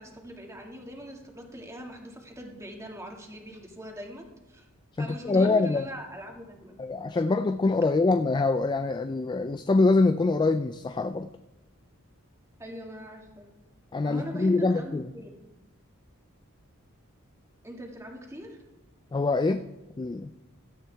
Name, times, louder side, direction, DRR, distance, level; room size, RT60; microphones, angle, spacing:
voice 1, 0.0-4.7 5.0-6.9 12.6-13.5 14.0-15.4 17.6-18.6, equal, 15° right, 1 dB, 1.9 m, -42 dB
voice 2, 5.0-5.9 6.8-11.3 13.9-15.0 19.1-19.7 20.0-20.3, left 3 dB, 20° left, 10 dB, 0.3 m, -24 dB
16.5 x 12.0 x 3.4 m, 1.0 s
head